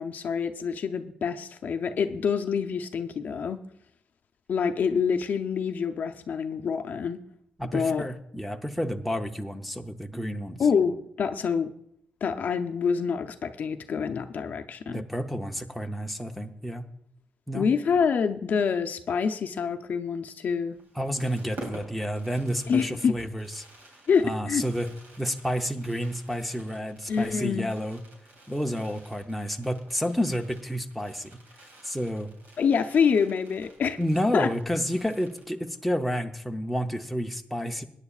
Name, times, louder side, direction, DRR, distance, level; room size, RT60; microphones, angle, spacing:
voice 1, 0.0-3.6 4.5-7.2 7.7-8.1 10.6-11.7 12.2-15.0 17.5-20.8 22.7-23.2 24.1-24.6 27.1-27.7 32.6-34.0 34.3-34.5, left 6 dB, 60° left, 7 dB, 0.6 m, -26 dB
voice 2, 7.6-10.6 14.9-16.9 17.5-17.7 20.9-23.6 24.2-24.9 25.2-28.0 28.5-31.4 31.8-32.3 34.0-37.8, equal, ahead, 3 dB, 0.7 m, -30 dB
Fireworks, 20.7-35.9 36.2-36.3 36.5-36.8, right 2 dB, 80° right, 3.2 m, -50 dB
21.0 x 9.9 x 2.4 m, 0.72 s
cardioid pair, 125°, 3 cm